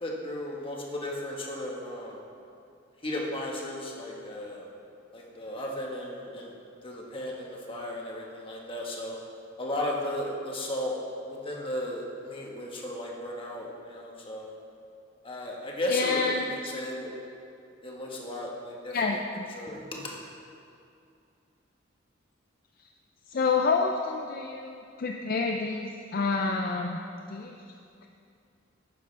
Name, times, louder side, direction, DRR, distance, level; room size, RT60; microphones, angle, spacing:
voice 1, 0.0-2.2 3.0-4.7 5.1-6.6 6.8-9.2 9.6-11.0 11.3-14.5 15.2-17.1 17.8-19.2 19.5-20.1, left 1 dB, 30° left, -2 dB, 1.4 m, -35 dB
voice 2, 15.9-16.5 18.9-19.5 23.3-27.0 27.3-27.6, left 4 dB, 50° left, 2 dB, 0.5 m, -28 dB
11.5 x 9.4 x 3.4 m, 2.5 s
head